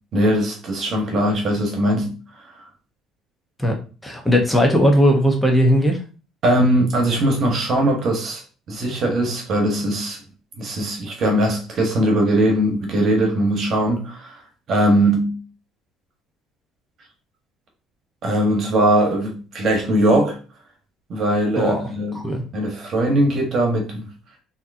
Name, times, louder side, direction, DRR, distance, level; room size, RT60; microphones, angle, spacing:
voice 1, 0.1-2.1 6.4-8.4 8.7-10.2 10.6-14.4 14.7-15.3 18.2-20.4 21.1-22.2 22.5-24.1, right 1 dB, 50° right, 1.2 m, -20 dB
voice 2, 4.0-6.0 21.6-21.8 22.1-22.4, equal, 10° left, 0.9 m, -17 dB
3.6 x 2.8 x 2.6 m
supercardioid pair, 80°, 0 cm